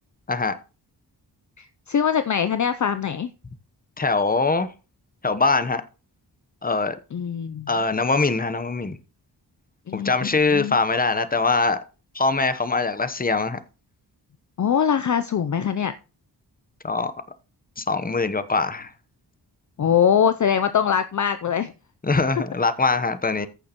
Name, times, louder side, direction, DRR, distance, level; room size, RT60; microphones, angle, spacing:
voice 1, 1.6-3.3 7.1-7.7 9.9-10.8 14.6-15.9 19.8-21.7, left 8 dB, 45° left, 0.6 m, -22 dB
voice 2, 4.0-4.7 5.2-5.8 6.6-7.0 7.7-9.0 9.9-11.8 12.1-13.6 16.8-17.1 17.8-18.9 22.0-23.5, left 3 dB, 20° left, 0.9 m, -22 dB
14.5 x 6.5 x 3.0 m
wide cardioid pair, 80°, 42 cm